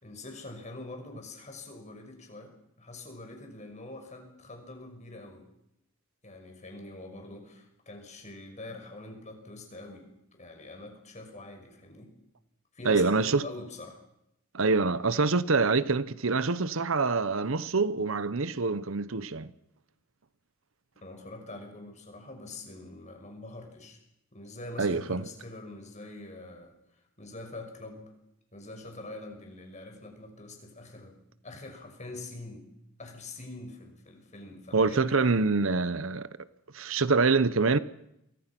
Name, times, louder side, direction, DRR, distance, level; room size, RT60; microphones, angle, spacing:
voice 1, 0.0-5.5 6.2-12.1 12.7-14.0 21.0-24.0 24.3-26.8 27.2-28.1 28.5-31.2 31.4-32.7 33.0-35.5, left 2 dB, 35° left, 6.0 m, -44 dB
voice 2, 12.8-13.4 14.5-19.5 24.8-25.2 34.7-36.3 36.7-37.8, right 4 dB, 70° right, 0.9 m, -25 dB
29.5 x 24.5 x 6.1 m
head